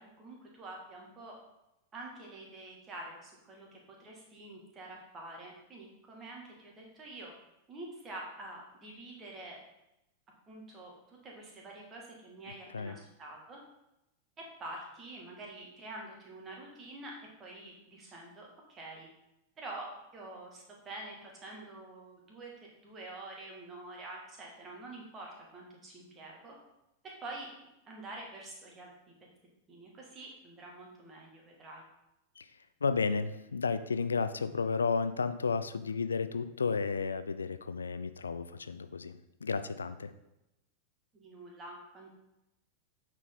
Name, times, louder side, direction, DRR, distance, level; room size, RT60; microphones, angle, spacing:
voice 1, 0.0-1.4 1.9-7.3 7.7-9.6 10.5-13.6 14.6-17.1 17.4-19.1 19.6-19.9 20.1-22.5 22.8-26.6 27.0-27.5 27.9-28.9 29.7-31.8 41.1-42.1, right 2 dB, 25° right, -1 dB, 2.1 m, -47 dB
voice 2, 32.8-40.1, left 5 dB, 75° left, 11 dB, 0.4 m, -32 dB
8.6 x 4.6 x 3.9 m, 0.89 s
figure-of-eight pair, 90°, 0 cm